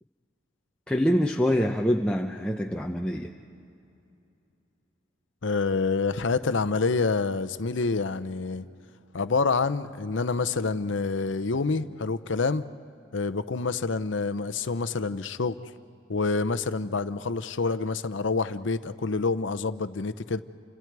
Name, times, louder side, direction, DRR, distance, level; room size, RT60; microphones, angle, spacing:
voice 1, 0.9-3.3, equal, 5° left, 0 dB, 0.7 m, -25 dB
voice 2, 5.4-8.7 9.1-12.6 13.1-15.6 16.1-20.4, left 4 dB, 70° left, 13 dB, 0.7 m, -27 dB
30.0 x 26.0 x 4.7 m, 2.7 s
head